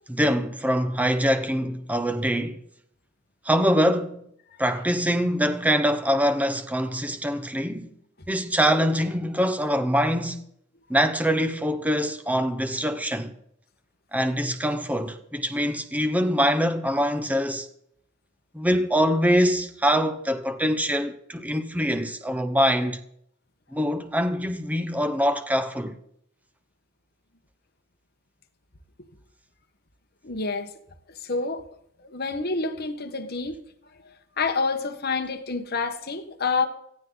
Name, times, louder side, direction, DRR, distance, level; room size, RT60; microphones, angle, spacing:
voice 1, 0.1-2.6 3.4-4.3 4.6-7.9 8.3-10.4 10.9-13.3 14.1-17.7 18.5-23.0 23.7-25.9, equal, 10° right, 1.2 m, -24 dB
voice 2, 30.2-30.7 31.2-31.6 32.0-33.6 34.0-36.7, left 4 dB, 50° left, 1.5 m, -28 dB
18.0 x 15.0 x 4.0 m
head